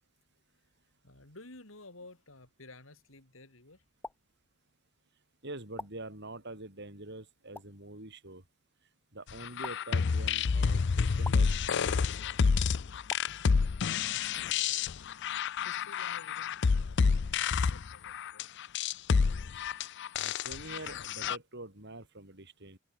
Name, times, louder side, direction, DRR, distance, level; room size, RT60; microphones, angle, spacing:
voice 1, 1.0-3.8 14.5-14.9 15.6-18.5, left 2 dB, 80° left, 4.8 m, -53 dB
sound 1, 4.0-4.2 5.8-5.9 7.5-7.7 9.6-9.8 11.2-11.4 13.1-13.2, left 2 dB, 10° left, 0.5 m, -41 dB
voice 2, 5.4-8.4 9.1-12.0 20.2-22.8, right 2 dB, 60° right, 7.8 m, -45 dB
sound 2, 9.4-21.4, left 5 dB, 60° left, 0.5 m, -29 dB
open air
head